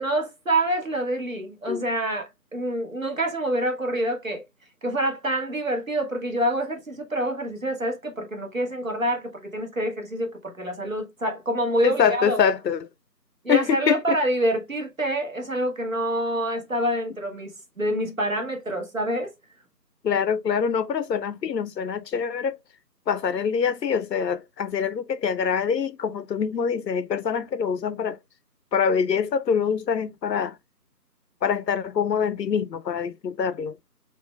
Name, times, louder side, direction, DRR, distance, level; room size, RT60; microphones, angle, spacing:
voice 1, 0.0-4.4 4.8-12.4 13.4-19.3, right 1 dB, 50° right, 1.2 m, -27 dB
voice 2, 11.8-12.9 13.5-14.2 20.0-22.6 23.1-28.2 28.7-30.6 31.4-33.7, left 7 dB, 80° left, 0.6 m, -25 dB
5.3 x 2.9 x 2.2 m
figure-of-eight pair, 175°, 50 cm